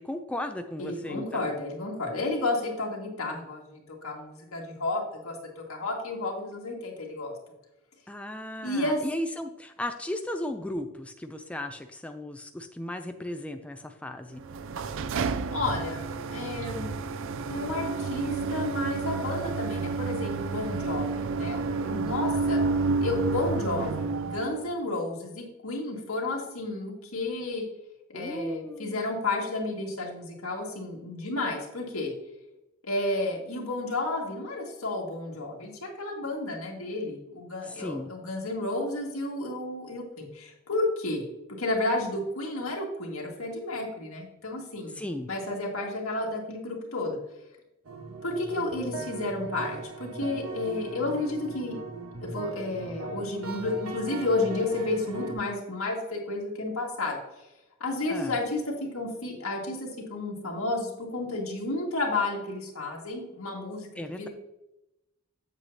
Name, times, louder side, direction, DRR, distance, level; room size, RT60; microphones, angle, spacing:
voice 1, 0.0-1.4 8.1-14.4 21.9-22.2 28.1-29.0 37.6-38.1 45.0-45.3 58.1-58.4 64.0-64.3, left 1 dB, 5° left, 6 dB, 0.4 m, -35 dB
voice 2, 0.8-7.3 8.6-9.0 15.5-16.0 16.3-17.0 17.5-22.6 23.0-27.6 28.1-32.1 32.8-41.2 41.6-45.0 45.3-47.2 48.2-51.8 52.2-57.2 57.8-63.9 64.2-64.3, left 2 dB, 75° left, -1 dB, 2.0 m, -31 dB
sound 1, 14.4-24.7, right 4 dB, 65° right, 0.4 m, -30 dB
sound 2, 47.9-55.3, right 4 dB, 80° right, 1.3 m, -39 dB
8.0 x 7.9 x 2.8 m, 0.90 s
head